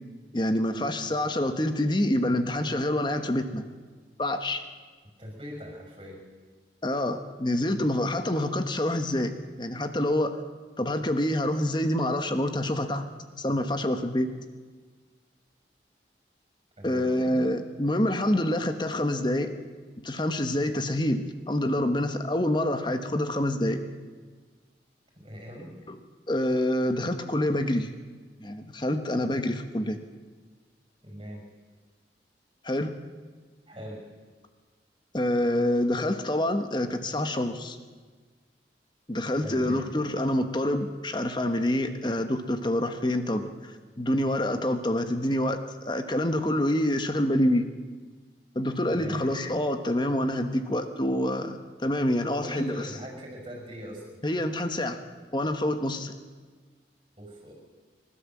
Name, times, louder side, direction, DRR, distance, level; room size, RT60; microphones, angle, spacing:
voice 1, 0.3-3.6 4.2-4.6 6.8-9.3 9.6-10.4 10.8-13.1 13.4-14.3 16.8-19.5 20.0-23.8 26.3-27.9 28.4-30.0 32.6-33.0 35.1-37.8 39.1-43.5 44.0-45.6 45.8-47.7 48.5-52.9 54.2-55.0 55.3-56.1, left 1 dB, 25° left, 8 dB, 1.2 m, -26 dB
voice 2, 5.2-6.3 16.8-17.1 25.2-25.7 31.0-31.4 33.7-34.1 39.4-39.9 48.9-49.2 52.4-54.2 57.2-57.5, equal, 30° right, 1 dB, 5.6 m, -41 dB
27.5 x 13.0 x 7.3 m, 1.5 s
head